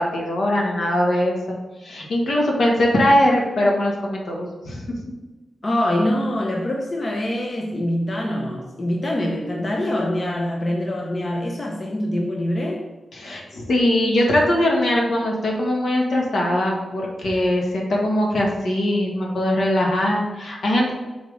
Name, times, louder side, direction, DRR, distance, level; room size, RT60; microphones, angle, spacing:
voice 1, 0.0-1.6 1.8-5.0 13.1-20.9, left 1 dB, 70° left, 1.6 m, -21 dB
voice 2, 5.6-12.9, left 1 dB, 35° left, 0.7 m, -24 dB
5.8 x 3.8 x 5.0 m
wide cardioid pair, 110°, 0 cm